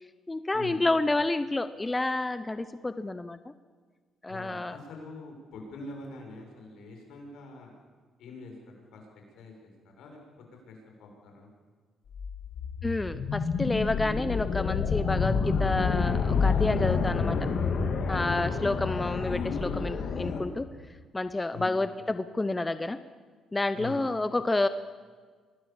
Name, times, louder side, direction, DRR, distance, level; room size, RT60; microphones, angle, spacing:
voice 1, 0.3-3.4 4.2-4.8 12.8-17.4 18.1-20.7 21.1-23.0 23.5-24.7, left 2 dB, 15° left, 12 dB, 0.9 m, -29 dB
voice 2, 4.3-7.7 8.2-9.0 9.4-9.7 10.0-10.2 10.6-11.5 21.5-21.7 23.7-24.1, left 3 dB, 80° left, 2 dB, 6.7 m, -44 dB
sound 1, 12.1-20.4, left 5 dB, 60° left, 3.1 m, -28 dB
25.5 x 19.5 x 7.4 m, 1.5 s
cardioid pair, 90°, 0 cm